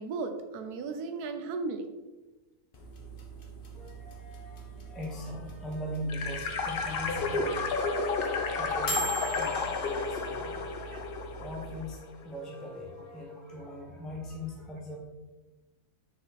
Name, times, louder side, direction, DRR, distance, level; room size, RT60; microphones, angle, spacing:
voice 1, 0.0-1.9 9.2-9.3 10.9-11.0, right 4 dB, 85° right, 7 dB, 1.2 m, -35 dB
sound 1, 2.7-11.8, right 3 dB, 40° left, 1.2 m, -42 dB
voice 2, 3.7-15.0, equal, ahead, -3 dB, 1.0 m, -41 dB
sound 2, 6.1-11.8, left 4 dB, 55° left, 0.7 m, -32 dB
6.5 x 5.0 x 4.0 m, 1.1 s
omnidirectional pair, 1.6 m